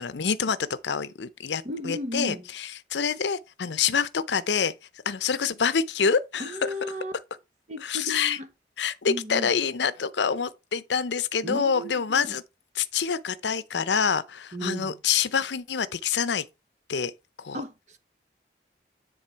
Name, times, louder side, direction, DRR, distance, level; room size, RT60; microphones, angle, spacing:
voice 1, 0.0-4.7 5.1-6.7 7.8-8.4 8.8-12.4 12.8-16.5 16.9-17.1 17.4-17.6, left 6 dB, 80° left, 0.6 m, -26 dB
voice 2, 1.6-2.4 6.4-7.1 7.7-8.5 9.1-9.5 11.4-12.4 14.5-15.0 17.5-18.0, equal, 40° right, 1.2 m, -34 dB
10.0 x 3.7 x 4.5 m
head